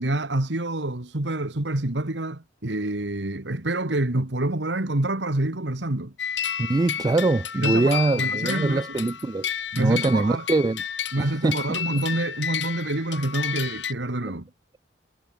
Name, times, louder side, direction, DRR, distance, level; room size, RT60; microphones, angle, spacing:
voice 1, 0.0-6.1 7.5-8.9 9.7-10.4 11.1-14.5, right 1 dB, 85° right, 2.0 m, -27 dB
sound 1, 6.2-13.9, left 8 dB, 90° left, 2.2 m, -31 dB
voice 2, 6.6-9.5 9.8-10.8 11.2-11.6, right 2 dB, 20° right, 0.3 m, -23 dB
head